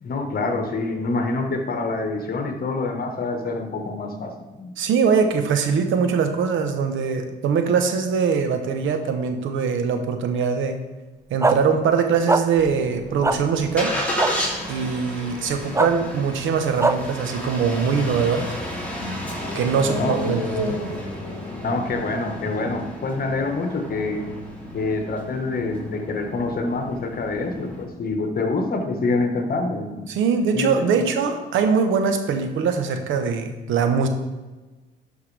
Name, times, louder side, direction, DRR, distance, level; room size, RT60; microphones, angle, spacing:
voice 1, 0.0-4.7 20.0-20.2 21.6-24.3 24.7-30.1 30.5-31.1, left 3 dB, 50° left, 4 dB, 1.4 m, -26 dB
voice 2, 4.8-10.8 11.3-13.9 14.7-18.5 19.5-20.8 30.1-34.1, right 6 dB, 75° right, 7 dB, 1.0 m, -22 dB
sound 1, 11.4-11.6 12.3-12.4 13.2-13.4 14.2-14.3 15.7-15.9 16.8-16.9, right 3 dB, 15° right, 0.5 m, -19 dB
Engine starting, 12.6-27.8, equal, 5° left, 2.7 m, -32 dB
11.5 x 5.7 x 3.4 m, 1.2 s
cardioid pair, 90°, 20 cm